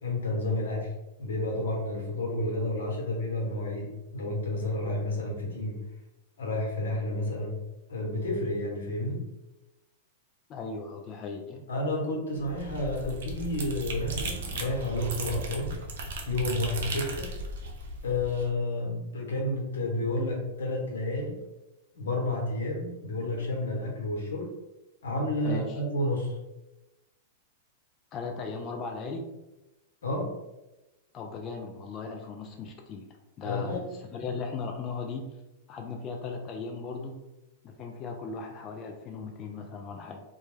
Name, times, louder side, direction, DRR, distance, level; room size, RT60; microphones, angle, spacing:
voice 1, 0.0-0.9 1.2-5.8 6.4-7.6 7.9-9.2 11.7-15.7 16.3-17.4 18.0-21.4 21.9-24.5 25.0-26.4 30.0-30.3 33.4-33.8, left 1 dB, 90° left, -1 dB, 0.9 m, -30 dB
voice 2, 10.5-11.6 25.4-25.8 28.1-29.3 31.1-33.1 33.4-35.4 35.7-37.2 37.6-40.2, left 4 dB, 30° left, 2 dB, 0.3 m, -37 dB
sound 1, 12.3-18.5, right 2 dB, 75° right, 0.5 m, -36 dB
2.2 x 2.2 x 3.1 m, 0.99 s
hypercardioid pair, 130°, 0 cm